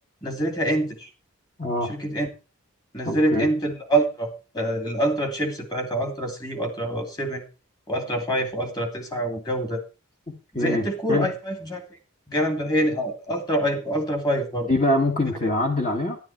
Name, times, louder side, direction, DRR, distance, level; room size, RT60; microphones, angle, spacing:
voice 1, 0.2-1.1 1.9-2.3 2.9-7.4 7.9-9.8 10.6-11.8 12.3-14.7, right 1 dB, 20° left, 4 dB, 2.7 m, -25 dB
voice 2, 1.6-1.9 3.1-3.5 10.6-11.3 14.7-16.2, left 1 dB, 35° left, 2 dB, 1.8 m, -24 dB
12.0 x 11.5 x 4.6 m, 0.32 s
head